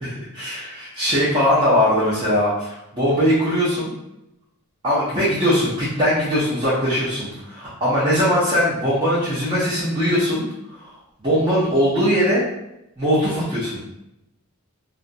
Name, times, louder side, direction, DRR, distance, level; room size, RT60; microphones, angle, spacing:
voice 1, 0.0-3.9 4.8-10.4 10.8-10.9 11.2-12.4 13.0-13.8, equal, 20° right, -10 dB, 0.6 m, -20 dB
2.4 x 2.0 x 2.6 m, 0.86 s
head